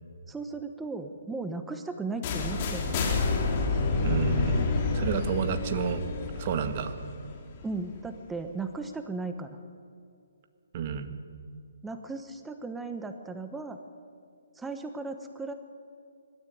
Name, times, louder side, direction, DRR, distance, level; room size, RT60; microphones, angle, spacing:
voice 1, 0.3-3.1 7.6-9.6 11.8-13.8 14.5-15.5, right 3 dB, 5° right, 7 dB, 1.1 m, -36 dB
sound 1, 2.2-8.1, left 3 dB, 35° left, 3.3 m, -29 dB
voice 2, 4.0-6.0 6.4-6.9 10.7-11.1, right 7 dB, 40° right, 8 dB, 1.8 m, -30 dB
20.5 x 14.0 x 9.4 m, 2.4 s
figure-of-eight pair, 140°, 0 cm